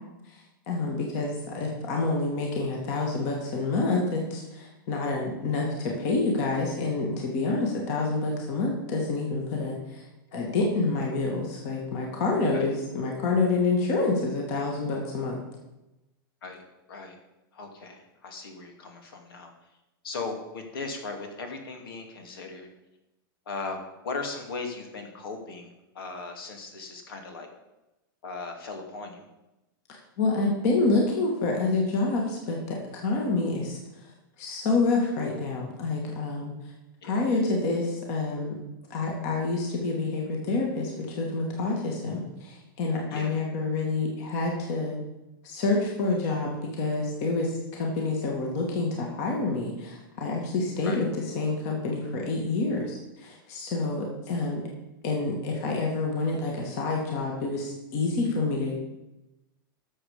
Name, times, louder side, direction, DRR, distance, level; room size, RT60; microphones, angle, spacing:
voice 1, 0.7-10.0 10.3-15.4 30.2-33.8 34.4-36.5 37.0-38.6 38.9-45.0 45.4-51.1 51.3-54.6 55.0-58.9, left 3 dB, 45° left, 0 dB, 2.3 m, -28 dB
voice 2, 17.5-19.5 20.0-22.7 23.5-27.5 28.2-29.3 37.0-37.2 43.1-43.4 50.8-51.0, left 3 dB, 85° left, 4 dB, 2.6 m, -38 dB
12.5 x 7.2 x 5.1 m, 0.97 s
supercardioid pair, 160°, 12 cm